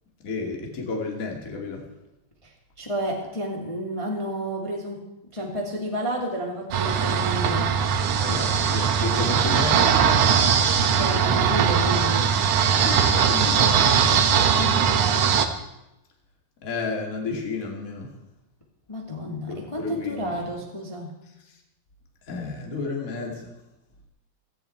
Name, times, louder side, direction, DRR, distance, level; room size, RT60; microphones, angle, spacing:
voice 1, 0.2-1.9 8.2-10.1 12.8-14.5 16.6-18.1 19.5-20.4 21.5-21.6 22.3-23.5, left 4 dB, 25° left, 1 dB, 2.2 m, -32 dB
voice 2, 2.4-5.0 5.3-7.9 10.8-12.3 14.0-15.4 18.9-21.2, equal, 10° left, -1 dB, 1.7 m, -31 dB
sound 1, 6.7-15.5, right 7 dB, 70° right, 1.5 m, -20 dB
17.0 x 14.5 x 4.5 m, 0.94 s
omnidirectional pair, 4.2 m